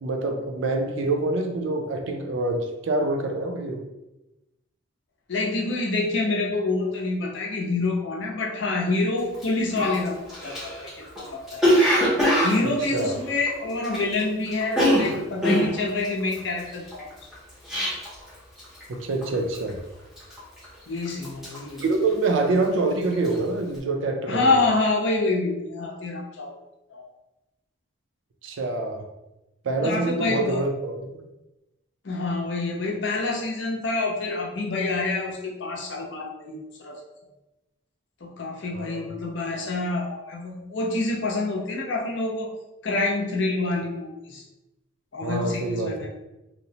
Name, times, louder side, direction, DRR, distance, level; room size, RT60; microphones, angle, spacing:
voice 1, 0.0-3.8 12.8-13.2 18.9-19.8 21.8-24.6 28.4-29.0 29.6-31.1 38.7-39.1 45.2-46.0, right 2 dB, 70° right, 4 dB, 0.4 m, -26 dB
voice 2, 5.3-10.9 11.2-11.6 12.4-17.1 20.9-21.8 24.3-26.5 26.9-27.1 29.8-30.6 32.0-37.0 38.2-42.5 42.8-44.4 45.1-46.1, left 3 dB, 65° left, -1 dB, 0.6 m, -27 dB
Cough, 9.3-9.4 9.8-14.2 14.5-18.3 18.6-18.9 19.2-19.7 20.2-20.8 21.1-22.7 23.0-23.4, equal, ahead, 0.6 m, -23 dB
2.8 x 2.0 x 2.7 m, 0.96 s
head